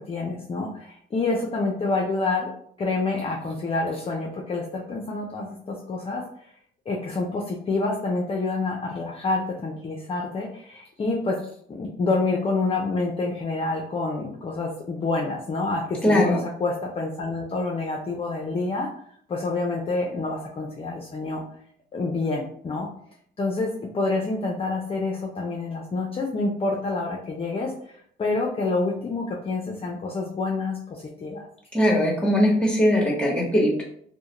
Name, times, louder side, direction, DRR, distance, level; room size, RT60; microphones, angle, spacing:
voice 1, 0.0-2.5 2.8-6.2 6.9-11.4 11.7-18.9 19.3-21.4 21.9-22.9 23.4-31.5, left 3 dB, 30° left, -1 dB, 0.4 m, -27 dB
voice 2, 16.0-16.4 31.7-33.8, equal, 5° left, -2 dB, 1.0 m, -20 dB
2.3 x 2.1 x 2.9 m, 0.63 s
cardioid pair, 90°, 20 cm